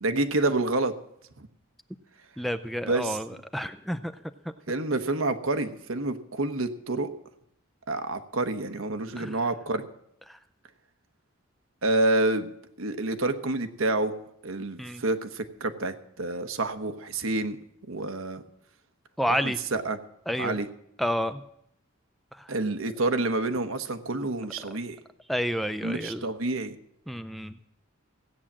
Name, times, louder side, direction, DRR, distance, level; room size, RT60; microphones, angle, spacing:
voice 1, 0.0-0.9 1.4-1.5 2.8-3.2 4.7-7.1 7.9-9.9 11.8-12.5 12.8-14.1 14.4-17.6 17.9-18.4 19.3-20.0 20.4-20.7 22.5-25.0 25.8-26.8, right 2 dB, 85° right, 9 dB, 1.2 m, -28 dB
voice 2, 2.4-4.1 9.2-9.4 10.3-10.4 14.8-15.0 19.2-19.6 20.3-20.6 21.0-21.4 22.3-22.5 25.3-26.2 27.1-27.6, equal, ahead, 11 dB, 0.4 m, -30 dB
16.5 x 8.7 x 7.4 m, 0.75 s
head